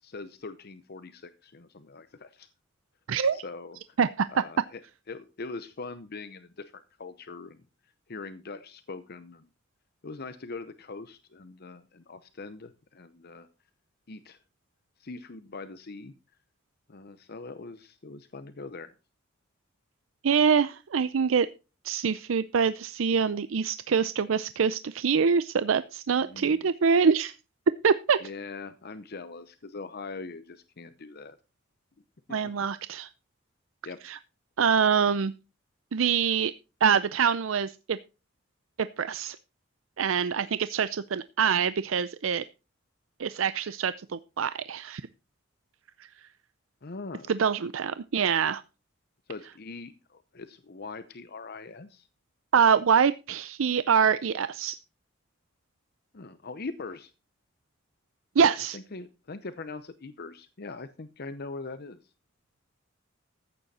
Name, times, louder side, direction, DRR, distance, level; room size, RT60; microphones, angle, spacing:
voice 1, 0.0-2.5 3.3-4.0 4.3-4.8 5.1-9.5 10.0-13.5 14.1-14.4 15.0-16.1 16.9-18.9 26.2-26.7 28.2-31.4 32.4-32.5 33.8-34.0 46.8-47.3 49.3-52.1 56.1-57.1 58.7-62.1, left 3 dB, 55° left, 12 dB, 0.8 m, -42 dB
voice 2, 20.2-21.5 21.8-27.3 27.8-28.2 32.3-33.1 34.0-34.2 34.6-35.3 35.9-36.5 36.8-38.0 39.0-39.4 40.0-42.4 43.2-45.0 46.0-46.1 47.3-48.6 52.5-54.8 58.4-58.8, right 6 dB, 85° right, 14 dB, 0.5 m, -25 dB
14.5 x 9.1 x 4.2 m, 0.31 s
head